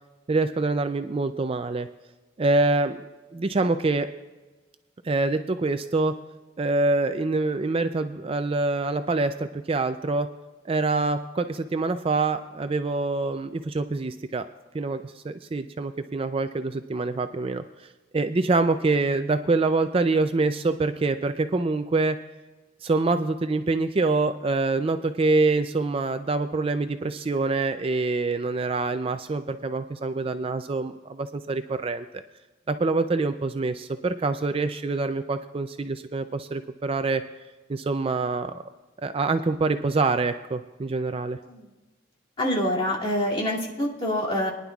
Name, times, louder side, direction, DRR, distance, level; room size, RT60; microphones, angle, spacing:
voice 1, 0.3-1.9 2.4-3.0 3.3-4.1 5.0-6.1 6.6-10.3 10.7-14.5 14.7-17.6 18.1-22.2 22.8-32.2 32.7-37.2 37.7-38.5 39.0-41.4, right 3 dB, 30° right, 9 dB, 0.4 m, -25 dB
voice 2, 42.4-44.5, left 1 dB, 30° left, -4 dB, 2.5 m, -26 dB
22.5 x 10.5 x 2.4 m, 1.2 s
head